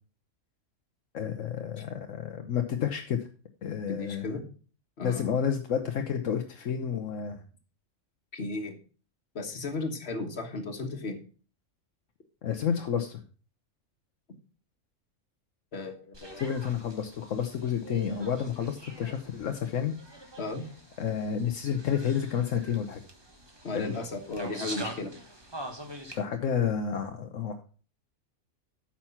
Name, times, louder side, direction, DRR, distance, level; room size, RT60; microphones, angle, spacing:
voice 1, 1.1-3.2 3.6-4.4 5.0-7.4 12.4-13.2 16.4-19.9 21.0-23.0 23.7-23.9 26.1-27.6, left 8 dB, 80° left, 5 dB, 1.2 m, -30 dB
voice 2, 3.9-4.4 5.0-5.3 8.3-8.7 9.3-11.2 15.7-16.4 20.4-20.6 23.6-25.1, left 3 dB, 55° left, 5 dB, 1.7 m, -35 dB
sound 1, 16.1-26.2, right 1 dB, 20° right, 1.4 m, -45 dB
8.9 x 5.9 x 5.7 m, 0.38 s
omnidirectional pair, 1.3 m